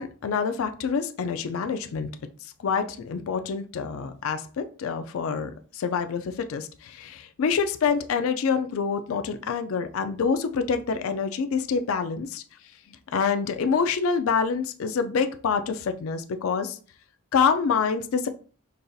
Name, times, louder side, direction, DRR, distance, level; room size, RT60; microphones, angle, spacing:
voice 1, 0.0-2.1 2.6-12.4 13.1-16.8 17.3-18.3, left 6 dB, 70° left, 8 dB, 0.4 m, -26 dB
5.3 x 2.6 x 2.3 m, 0.40 s
head